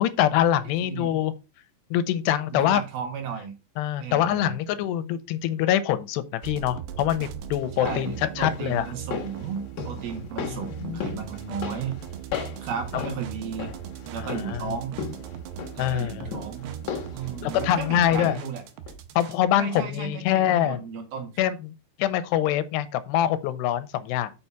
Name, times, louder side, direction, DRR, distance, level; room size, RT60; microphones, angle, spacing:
voice 1, 0.0-1.3 1.9-2.8 3.8-8.9 10.5-11.0 12.9-13.0 14.2-14.6 15.8-16.3 17.4-18.4 19.2-20.8 21.4-21.7 22.0-24.3, left 11 dB, 90° left, 2.9 m, -24 dB
voice 2, 0.7-1.1 2.5-3.5 4.0-4.6 7.8-12.1 12.6-13.7 14.1-15.0 15.8-16.8 17.1-18.6 19.5-21.3, right 6 dB, 65° right, 3.6 m, -34 dB
sound 1, 6.4-19.4, right 10 dB, 90° right, 3.0 m, -39 dB
sound 2, 7.6-18.6 18.9-19.0, left 7 dB, 55° left, 2.4 m, -37 dB
6.9 x 5.6 x 5.8 m
omnidirectional pair, 4.8 m